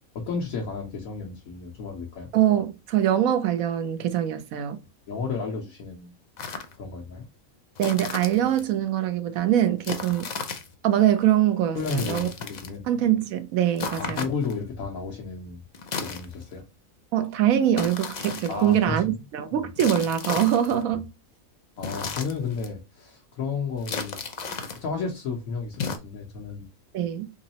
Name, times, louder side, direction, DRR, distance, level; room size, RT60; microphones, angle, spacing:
voice 1, 0.1-2.3 5.1-6.1 6.7-7.3 11.7-12.9 13.9-15.6 16.0-16.6 18.5-19.2 19.6-19.7 20.9-21.0 21.8-24.2 24.7-26.7, left 5 dB, 85° left, 1.3 m, -32 dB
voice 2, 2.3-4.8 7.8-10.3 10.8-12.3 12.9-14.3 17.1-21.1 26.9-27.3, right 11 dB, 85° right, 1.1 m, -23 dB
sound 1, 6.4-6.8 7.8-8.6 9.8-10.7 11.7-12.8 13.8-14.6 15.7-16.6 17.7-18.8 19.8-20.8 21.8-22.7 23.8-24.8 25.7-26.0, left 5 dB, 55° left, 0.5 m, -34 dB
3.9 x 3.0 x 2.7 m
omnidirectional pair, 1.4 m